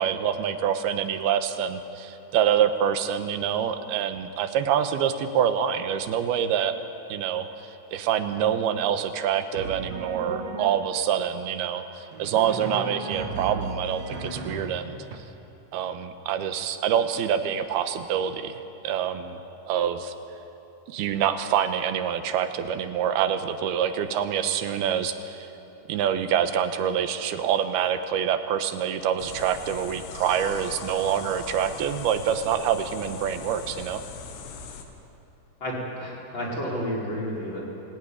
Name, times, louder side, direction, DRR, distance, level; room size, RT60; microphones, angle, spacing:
voice 1, 0.0-6.8 7.1-7.5 7.9-15.0 15.7-19.4 19.7-20.1 20.9-25.5 25.9-34.0, right 9 dB, 75° right, 8 dB, 2.8 m, -26 dB
Drum, 9.5-11.0 12.1-15.2, right 4 dB, 50° right, 2.2 m, -35 dB
sound 1, 29.2-34.8, left 5 dB, 75° left, 3.7 m, -40 dB
voice 2, 35.6-37.6, equal, 25° left, -4 dB, 5.3 m, -31 dB
28.5 x 17.0 x 9.8 m, 2.9 s
omnidirectional pair, 4.9 m